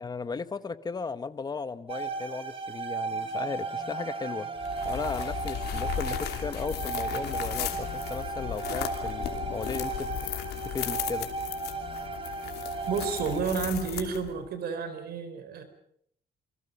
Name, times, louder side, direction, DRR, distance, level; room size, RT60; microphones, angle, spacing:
voice 1, 0.0-4.5 4.8-10.3 10.6-11.3, left 4 dB, 25° left, 13 dB, 1.1 m, -36 dB
sound 1, 1.9-13.4, right 4 dB, 35° right, 2.8 m, -35 dB
sound 2, 4.6-14.5, left 10 dB, 90° left, 3.0 m, -36 dB
voice 2, 12.9-15.6, right 5 dB, 75° right, 10 dB, 4.2 m, -31 dB
28.5 x 26.0 x 5.4 m, 0.68 s
cardioid pair, 145°, 16 cm